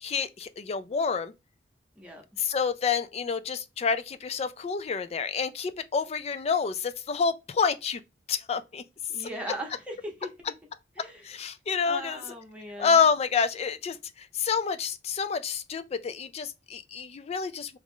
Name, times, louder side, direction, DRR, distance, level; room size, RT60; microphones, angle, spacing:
voice 1, 0.0-1.3 2.4-8.0 8.3-8.8 9.2-9.3 11.0-12.2 12.8-17.8, left 6 dB, 35° left, 0.3 m, -28 dB
voice 2, 2.0-2.5 9.1-10.3 11.0-11.2 11.9-13.0, right 1 dB, 5° right, 1.0 m, -39 dB
3.0 x 2.4 x 3.6 m
head